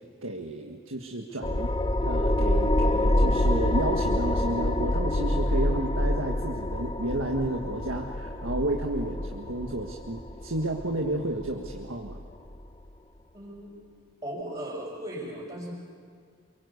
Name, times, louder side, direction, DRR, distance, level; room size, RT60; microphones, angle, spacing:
voice 1, 0.2-1.7 2.0-12.2, right 1 dB, 90° right, 1 dB, 1.7 m, -32 dB
sound 1, 1.4-12.5, left 1 dB, 20° left, 0.7 m, -27 dB
voice 2, 13.3-13.7 14.2-15.7, right 1 dB, 25° right, -8 dB, 5.3 m, -37 dB
28.0 x 24.0 x 8.3 m, 2.1 s
head